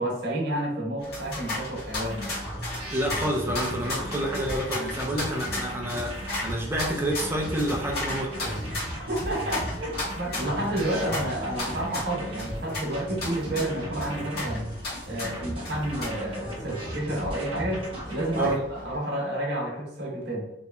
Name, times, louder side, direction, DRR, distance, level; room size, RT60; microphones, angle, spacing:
voice 1, 0.0-2.3 8.9-14.6 15.1-20.5, right 1 dB, 60° right, -2 dB, 0.8 m, -30 dB
sound 1, 1.0-19.0, left 1 dB, 55° left, 1.0 m, -36 dB
sound 2, 2.0-18.5, right 1 dB, 30° right, 0.9 m, -37 dB
voice 2, 2.9-8.7 9.3-9.4 15.2-15.4 18.4-18.6, right 1 dB, 10° right, -1 dB, 0.4 m, -29 dB
2.8 x 2.1 x 2.3 m, 0.89 s
head